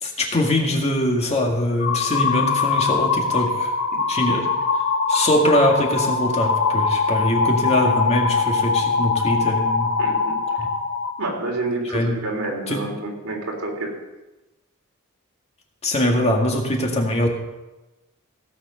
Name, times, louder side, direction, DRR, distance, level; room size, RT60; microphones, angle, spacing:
voice 1, 0.0-3.7 4.1-4.5 5.1-9.9 10.6-10.7 11.9-12.1 12.7-12.8 15.8-17.3, left 1 dB, 30° left, 0 dB, 2.0 m, -22 dB
sound 1, 1.8-11.1, left 4 dB, 60° left, 1.2 m, -22 dB
voice 2, 10.0-10.4 11.2-13.9, right 2 dB, 80° right, 0 dB, 3.3 m, -28 dB
16.5 x 7.3 x 5.6 m, 1.0 s
head